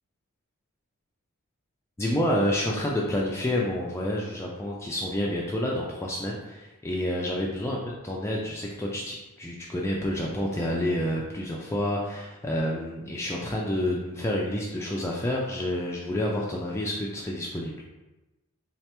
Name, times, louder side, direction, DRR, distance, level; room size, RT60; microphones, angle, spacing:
voice 1, 2.0-7.8 8.0-17.7, left 1 dB, 10° left, -3 dB, 0.3 m, -29 dB
3.9 x 3.2 x 2.9 m, 1.1 s
head